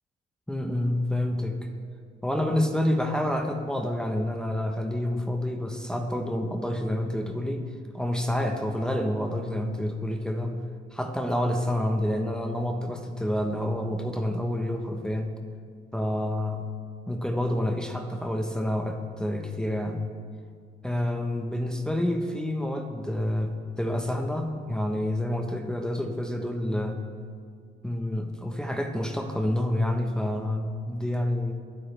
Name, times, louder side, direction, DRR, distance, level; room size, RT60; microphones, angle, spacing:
voice 1, 0.5-1.6 2.2-7.7 7.9-10.6 10.9-15.3 15.9-16.7 17.1-20.1 20.8-27.0 27.8-31.5, left 1 dB, 5° left, 3 dB, 1.0 m, -28 dB
23.0 x 8.6 x 3.4 m, 2.1 s
cardioid pair, 90°, 20 cm